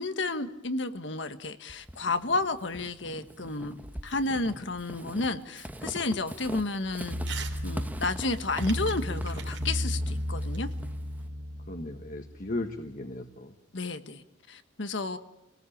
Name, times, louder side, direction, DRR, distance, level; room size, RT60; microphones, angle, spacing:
voice 1, 0.0-3.8 4.0-7.2 7.6-10.7 13.7-14.2 14.5-15.2, left 3 dB, 75° left, 10 dB, 1.5 m, -31 dB
Walk footsteps / Squeak, 1.7-11.3, equal, 10° right, 1.1 m, -42 dB
sound 1, 7.1-12.7, equal, 85° right, 2.0 m, -34 dB
Crumpling crinkling / Tearing, 7.3-7.6 7.9-11.2, right 8 dB, 70° right, 3.4 m, -44 dB
voice 2, 11.7-13.5, left 2 dB, 45° left, 5 dB, 1.5 m, -36 dB
27.5 x 19.0 x 8.7 m, 0.91 s
head